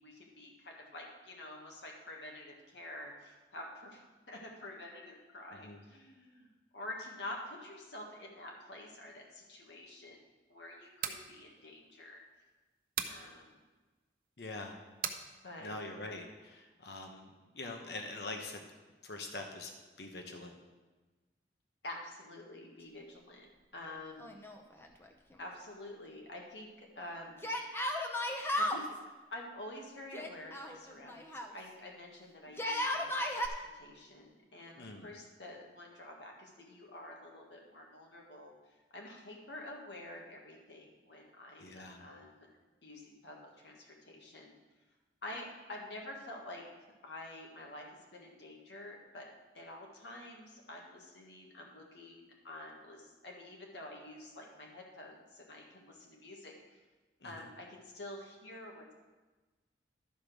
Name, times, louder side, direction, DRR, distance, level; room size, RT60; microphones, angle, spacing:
voice 1, 0.0-4.0 4.3-10.2 10.5-12.2 13.1-13.6 15.4-15.7 21.8-23.5 23.7-24.4 25.4-27.5 28.6-28.9 29.3-42.5 42.8-44.6 45.2-46.7 47.0-47.9 48.1-49.3 49.5-56.8 57.2-58.9, left 1 dB, 85° left, 0 dB, 1.6 m, -48 dB
sound 1, 10.8-11.3 13.0-13.2 15.0-15.2, right 8 dB, 55° right, 0.6 m, -36 dB
voice 2, 14.4-14.8 15.6-17.3 17.5-18.6 19.0-19.7 20.0-20.5 34.8-35.1 41.6-42.0 57.2-57.5, left 2 dB, 70° left, 3 dB, 1.0 m, -44 dB
Yell, 24.2-25.1 25.3-25.4 27.4-28.8 30.1-31.5 32.5-33.5, left 1 dB, 15° left, 0.7 m, -35 dB
12.0 x 5.1 x 6.2 m, 1.2 s
head